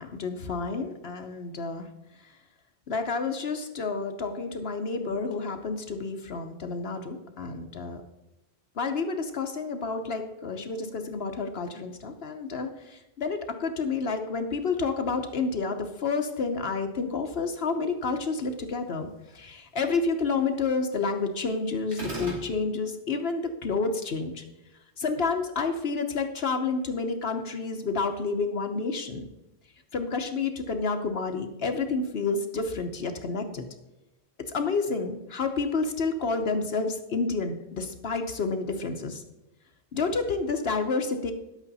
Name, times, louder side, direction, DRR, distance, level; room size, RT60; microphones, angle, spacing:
voice 1, 0.0-1.9 2.9-8.0 8.8-24.4 25.0-29.2 29.9-33.6 34.5-39.2 39.9-41.3, left 4 dB, 65° left, 6 dB, 1.1 m, -29 dB
sound 1, 21.9-22.5, right 1 dB, 75° right, 3.1 m, -34 dB
11.0 x 8.3 x 4.1 m, 1.0 s
omnidirectional pair, 1.1 m